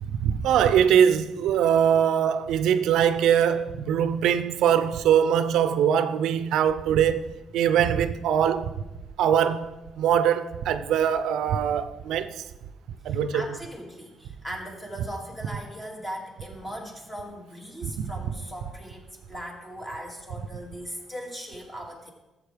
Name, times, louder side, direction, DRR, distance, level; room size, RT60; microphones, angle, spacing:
voice 1, 0.0-7.3 7.5-8.7 9.2-9.7 10.0-12.4 13.0-13.4 17.8-17.9, right 9 dB, 85° right, 0.4 m, -22 dB
voice 2, 13.0-22.1, equal, 15° left, 2.3 m, -39 dB
13.5 x 7.2 x 3.4 m
cardioid pair, 90°, 0 cm